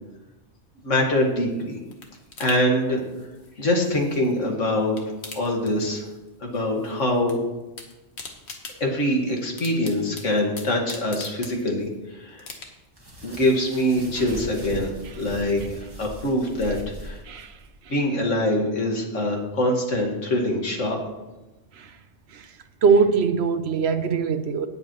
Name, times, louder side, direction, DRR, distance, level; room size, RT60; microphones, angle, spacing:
voice 1, 0.8-1.8 2.4-3.0 3.6-5.0 5.3-6.0 6.4-7.4 8.8-12.5 13.2-17.2 17.9-21.0, left 1 dB, 85° left, 2.2 m, -24 dB
sound 1, 1.2-4.5 4.8-6.3 6.5-7.4 7.6-12.0 12.4-13.0 13.4-13.5, left 3 dB, 60° left, 1.6 m, -42 dB
sound 2, 12.9-17.7, equal, 20° right, 2.0 m, -39 dB
voice 2, 22.8-24.7, right 5 dB, 65° right, 1.0 m, -21 dB
17.5 x 7.9 x 3.1 m
omnidirectional pair, 1.2 m